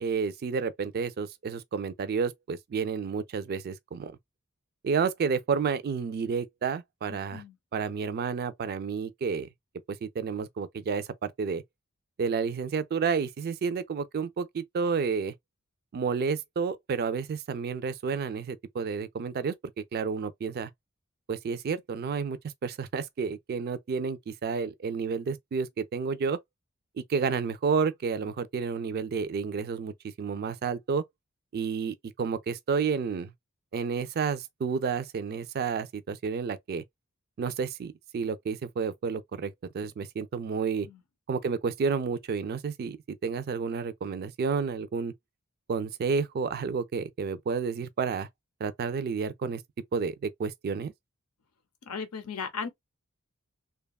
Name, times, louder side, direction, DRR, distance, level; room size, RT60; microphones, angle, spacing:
voice 1, 0.0-4.2 4.8-7.4 7.7-9.5 9.9-11.6 12.2-15.3 15.9-19.5 19.9-20.7 21.3-26.4 27.1-29.9 30.2-31.0 31.5-33.3 33.7-36.8 37.4-40.9 41.3-45.1 45.7-48.3 48.6-49.6 49.9-50.9, right 5 dB, 45° right, 0.3 m, -30 dB
voice 2, 51.8-52.7, left 5 dB, 80° left, 0.7 m, -36 dB
2.8 x 2.2 x 2.3 m
head